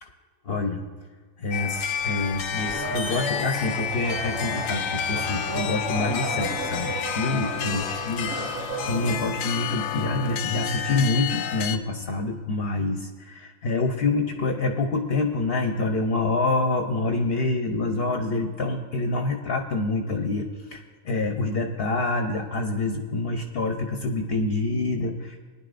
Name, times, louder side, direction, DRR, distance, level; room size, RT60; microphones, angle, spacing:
voice 1, 0.4-0.8 1.4-25.4, left 2 dB, 50° left, 4 dB, 1.0 m, -27 dB
sound 1, 1.5-11.8, left 8 dB, 80° left, 1.0 m, -30 dB
sound 2, 2.6-9.2, right 1 dB, 75° right, 2.6 m, -33 dB
20.0 x 10.5 x 2.5 m, 1.5 s
omnidirectional pair, 1.4 m